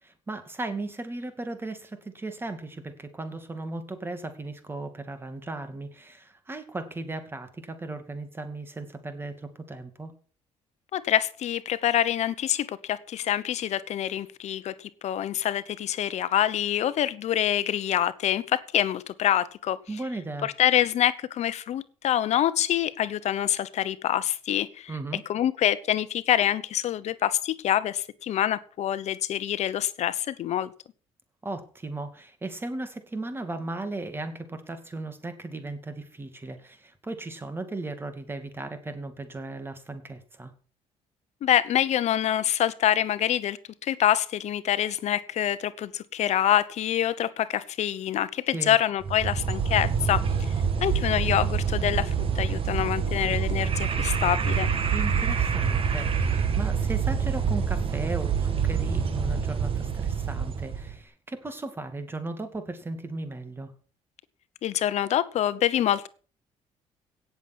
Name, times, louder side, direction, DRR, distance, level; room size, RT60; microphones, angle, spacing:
voice 1, 0.0-10.1 19.9-20.5 24.9-25.2 31.4-40.5 48.5-48.8 54.9-63.7, right 2 dB, 20° right, 8 dB, 2.4 m, -36 dB
voice 2, 10.9-30.7 41.4-50.2 50.8-54.7 64.6-66.1, left 11 dB, 65° left, 15 dB, 0.8 m, -26 dB
sound 1, 49.0-60.9, right 6 dB, 50° right, 2.4 m, -26 dB
17.5 x 7.1 x 6.2 m, 0.40 s
cardioid pair, 120°, 12 cm